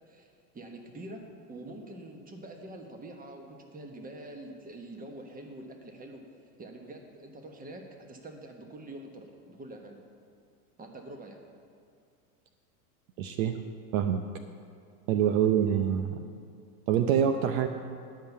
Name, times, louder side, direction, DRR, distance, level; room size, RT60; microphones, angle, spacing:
voice 1, 0.5-6.2 6.6-10.0 10.8-11.4, right 1 dB, 20° right, 3 dB, 1.3 m, -45 dB
voice 2, 13.2-13.6 13.9-14.2 15.1-16.2 16.9-17.7, right 9 dB, 60° right, 8 dB, 0.8 m, -25 dB
10.5 x 5.8 x 8.1 m, 2.3 s
hypercardioid pair, 105°, 47 cm